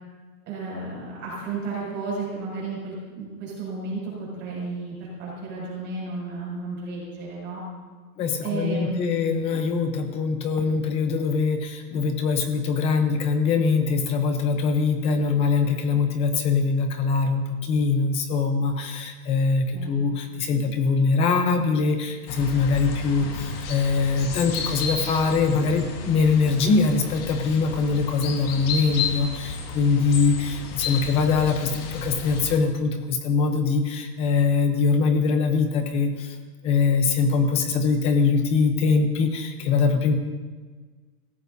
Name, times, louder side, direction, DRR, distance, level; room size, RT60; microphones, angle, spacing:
voice 1, 0.5-7.6 8.4-9.4 19.7-19.9, right 3 dB, 25° right, -5 dB, 6.6 m, -33 dB
voice 2, 8.2-36.4 36.6-40.2, left 4 dB, 15° left, 6 dB, 0.8 m, -23 dB
sound 1, 22.3-32.6, left 5 dB, 40° left, 2.1 m, -33 dB
26.0 x 17.0 x 2.8 m, 1.4 s
supercardioid pair, 170°, 46 cm